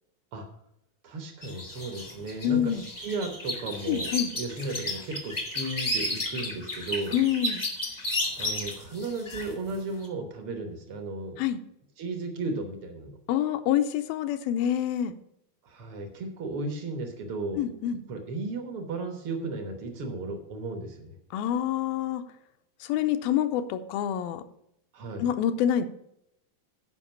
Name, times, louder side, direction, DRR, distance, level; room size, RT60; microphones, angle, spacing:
voice 1, 1.0-7.2 8.4-11.4 12.0-13.2 15.6-17.6 18.1-21.2 24.9-25.3, right 3 dB, 75° right, 5 dB, 1.2 m, -35 dB
sound 1, 1.4-9.7 10.0-10.1, left 1 dB, 45° left, 0.5 m, -33 dB
voice 2, 2.4-2.9 3.9-4.3 7.1-7.7 11.4-11.6 13.3-15.1 17.6-18.0 21.3-22.2 22.8-24.4 25.2-25.9, left 10 dB, 85° left, 8 dB, 2.4 m, -26 dB
11.0 x 5.3 x 7.0 m, 0.77 s
omnidirectional pair, 4.2 m